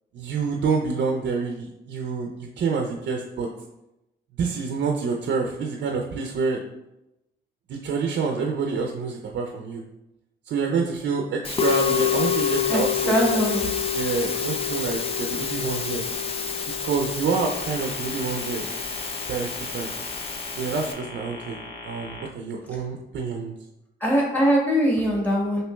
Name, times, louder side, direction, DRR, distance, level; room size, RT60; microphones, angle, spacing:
voice 1, 0.1-3.5 4.4-6.6 7.7-9.8 10.5-13.1 13.9-16.0 16.8-18.7 19.3-19.9 20.6-21.6 21.8-23.6, right 5 dB, 60° right, 2 dB, 0.5 m, -27 dB
Musical instrument, 11.4-20.9, left 7 dB, 30° left, 0.5 m, -27 dB
voice 2, 12.7-13.7 22.7-22.8 24.0-25.6, equal, 10° left, -3 dB, 1.4 m, -22 dB
sound 1, 17.3-22.3, left 2 dB, 60° left, 0.8 m, -40 dB
5.9 x 2.9 x 2.2 m, 0.91 s
cardioid pair, 90°, 20 cm